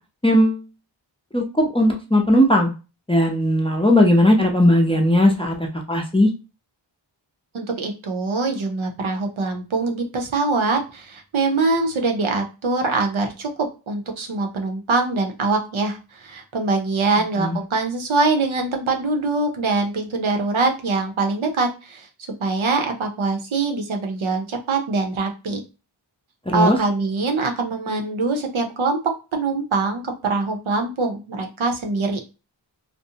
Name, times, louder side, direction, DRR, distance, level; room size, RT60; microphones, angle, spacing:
voice 1, 0.2-0.6 1.3-2.7 3.1-5.5 5.9-6.3 17.4-17.6 26.5-26.8, left 1 dB, 10° left, 1 dB, 0.5 m, -17 dB
voice 2, 7.5-22.1 22.4-25.6 26.5-29.0 29.3-32.3, right 3 dB, 75° right, 4 dB, 0.7 m, -23 dB
2.5 x 2.0 x 2.7 m, 0.31 s
wide cardioid pair, 65°, 48 cm